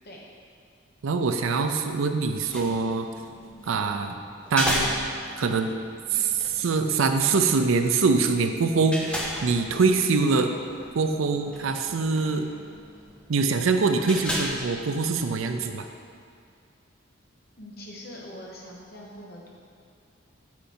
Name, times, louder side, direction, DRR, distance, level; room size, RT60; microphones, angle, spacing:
voice 1, 1.0-3.1 3.7-4.2 4.5-4.9 5.4-5.7 6.1-10.5 10.9-12.5 13.3-15.9, right 4 dB, 80° right, 6 dB, 0.5 m, -24 dB
sound 1, 2.3-15.7, equal, 5° left, 0.7 m, -36 dB
voice 2, 17.6-19.5, left 1 dB, 50° left, -3 dB, 1.3 m, -43 dB
8.5 x 5.0 x 4.3 m, 2.3 s
head